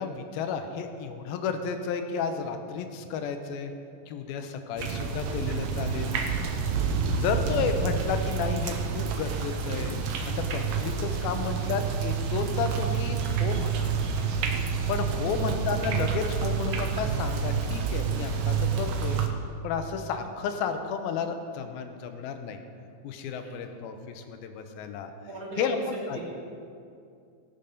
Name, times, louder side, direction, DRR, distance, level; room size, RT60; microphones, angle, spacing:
voice 1, 0.0-3.7 4.1-6.2 7.2-10.0 10.5-13.9 14.9-19.2 19.6-22.6 23.0-25.1 25.6-26.2, left 6 dB, 80° left, 7 dB, 2.6 m, -32 dB
sound 1, 4.8-19.3, right 6 dB, 70° right, 2.2 m, -28 dB
voice 2, 23.4-23.8 25.3-26.2, right 2 dB, 45° right, -5 dB, 2.8 m, -41 dB
19.0 x 7.1 x 5.4 m, 2.4 s
omnidirectional pair, 4.5 m